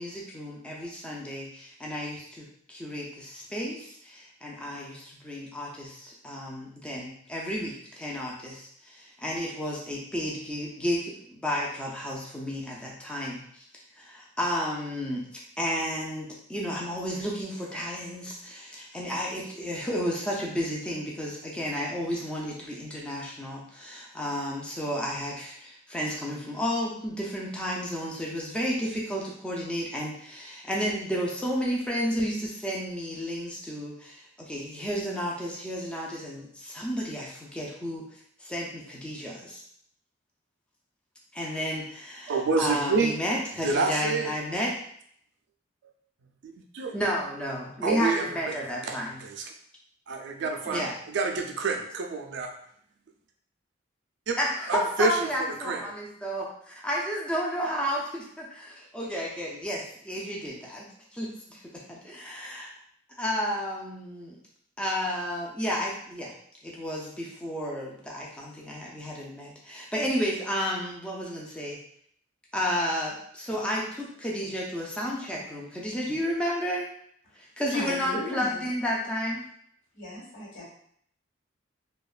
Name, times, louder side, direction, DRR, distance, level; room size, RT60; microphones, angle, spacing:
voice 1, 0.0-13.4 14.0-15.3 15.6-39.6 41.3-44.7 46.9-49.2 50.7-51.0 54.4-62.7 63.2-64.4 64.8-66.3 66.6-71.8 72.5-76.9 77.4-79.5, equal, 5° left, -4 dB, 0.4 m, -32 dB
voice 2, 42.3-43.1 43.6-44.3 46.4-47.0 47.8-49.5 50.1-52.5 54.3-54.4 54.7-55.2 55.6-55.8, right 4 dB, 65° right, 3 dB, 0.4 m, -28 dB
voice 3, 77.7-78.6 79.9-80.7, left 1 dB, 75° left, -5 dB, 1.2 m, -36 dB
2.8 x 2.2 x 2.3 m, 0.65 s
head